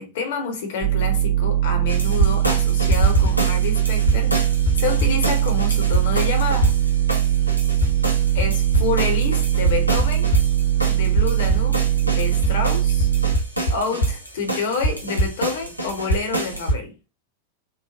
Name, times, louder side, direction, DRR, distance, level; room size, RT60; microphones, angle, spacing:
voice 1, 0.0-4.4 4.7-6.7 8.3-10.3 10.9-13.1 13.7-16.9, left 4 dB, 55° left, 0.9 m, -28 dB
sound 1, 0.8-13.4, right 12 dB, 25° right, 0.7 m, -20 dB
sound 2, 1.9-16.7, right 1 dB, 90° right, 0.8 m, -24 dB
3.2 x 2.0 x 2.4 m
figure-of-eight pair, 90°, 0 cm